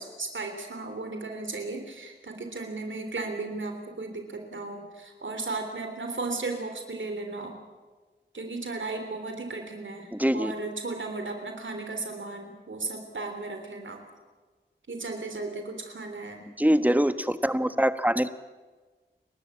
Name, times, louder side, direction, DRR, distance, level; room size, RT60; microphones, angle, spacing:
voice 1, 0.0-7.5 8.3-10.1 10.3-14.0 14.9-16.4, right 3 dB, 85° right, 5 dB, 3.4 m, -35 dB
voice 2, 10.1-10.5 16.6-18.3, equal, 10° right, 11 dB, 1.3 m, -24 dB
29.0 x 12.5 x 8.6 m, 1.3 s
cardioid pair, 40°, 19 cm